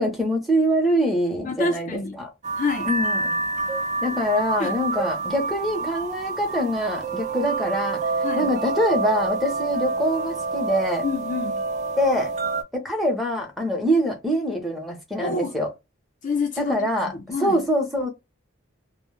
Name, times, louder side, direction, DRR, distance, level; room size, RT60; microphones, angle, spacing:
voice 1, 0.0-2.3 2.8-3.4 4.0-11.0 12.0-12.3 12.7-15.7 16.6-17.1 17.4-18.1, equal, ahead, 0.7 m, -24 dB
voice 2, 1.5-2.2 2.6-2.9 4.6-4.7 8.2-8.5 11.0-11.6 15.2-15.5 16.2-16.8 17.1-17.6, left 3 dB, 40° left, 0.4 m, -27 dB
sound 1, 2.4-12.6, right 3 dB, 35° right, 0.5 m, -28 dB
2.1 x 2.1 x 3.0 m
head